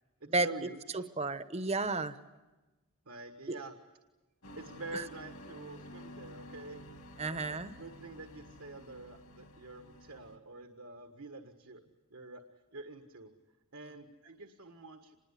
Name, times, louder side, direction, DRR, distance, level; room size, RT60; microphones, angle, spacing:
voice 1, 0.2-1.1 3.0-3.7 4.6-6.8 7.3-11.8 12.1-12.4 12.7-13.3 13.7-15.2, right 2 dB, 70° right, 5 dB, 1.7 m, -47 dB
voice 2, 0.9-2.2 3.5-3.6 4.9-5.0 7.2-7.7, right 3 dB, 30° right, 12 dB, 1.0 m, -32 dB
sound 1, 4.4-10.4, equal, 70° left, 2.7 m, -51 dB
26.5 x 21.0 x 8.4 m, 1.1 s
head